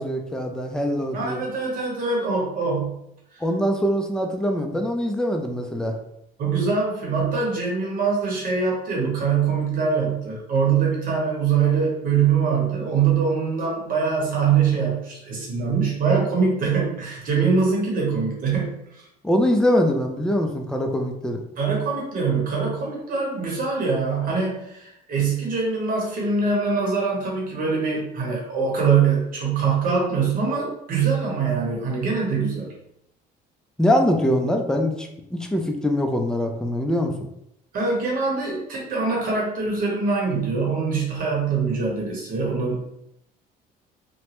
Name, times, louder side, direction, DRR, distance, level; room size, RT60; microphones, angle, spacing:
voice 1, 0.0-1.4 3.4-6.0 19.2-21.4 33.8-37.3, equal, 5° left, 3 dB, 0.4 m, -23 dB
voice 2, 1.1-2.9 3.3-3.4 6.4-19.0 21.6-32.7 37.7-42.9, right 5 dB, 55° right, -2 dB, 0.9 m, -23 dB
2.9 x 2.1 x 2.9 m, 0.79 s
cardioid pair, 110°, 17 cm